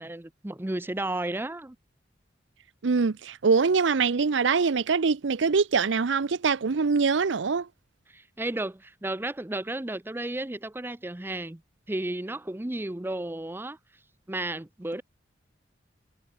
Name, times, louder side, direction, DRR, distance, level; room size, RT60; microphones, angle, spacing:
voice 1, 0.0-1.8 8.1-11.6 11.9-13.8 14.3-15.0, right 1 dB, 10° right, 0.5 m, -33 dB
voice 2, 2.8-7.7, right 5 dB, 85° right, 0.6 m, -23 dB
head